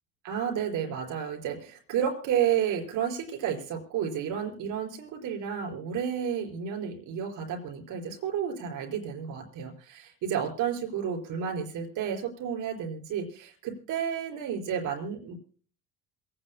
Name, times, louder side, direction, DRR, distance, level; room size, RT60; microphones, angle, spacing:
voice 1, 0.2-15.3, right 8 dB, 60° right, 2 dB, 4.8 m, -31 dB
27.5 x 10.0 x 2.2 m, 0.41 s
cardioid pair, 115°, 35 cm